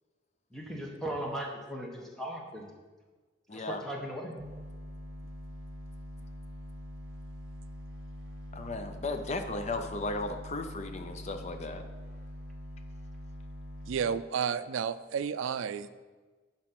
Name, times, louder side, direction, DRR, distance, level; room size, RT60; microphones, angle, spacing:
voice 1, 0.5-2.7 3.5-4.3, right 1 dB, ahead, -1 dB, 1.2 m, -38 dB
voice 2, 3.5-3.8 8.5-11.8, left 2 dB, 35° left, 7 dB, 0.5 m, -35 dB
sound 1, 4.4-14.0, equal, 50° right, 1.9 m, -44 dB
voice 3, 13.9-15.9, right 7 dB, 80° right, 14 dB, 0.4 m, -31 dB
10.5 x 4.3 x 6.0 m, 1.4 s
head